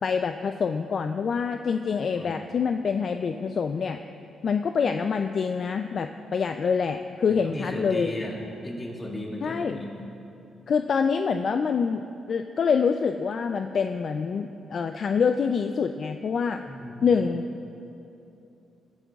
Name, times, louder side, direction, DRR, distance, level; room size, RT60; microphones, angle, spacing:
voice 1, 0.0-4.0 4.4-8.1 9.4-9.8 10.7-16.6 17.0-17.4, left 6 dB, 50° left, 7 dB, 0.3 m, -26 dB
voice 2, 2.1-2.5 7.3-10.1 16.7-17.1, left 1 dB, 20° left, -3 dB, 2.1 m, -35 dB
21.0 x 11.0 x 2.3 m, 2.9 s
cardioid pair, 115°, 0 cm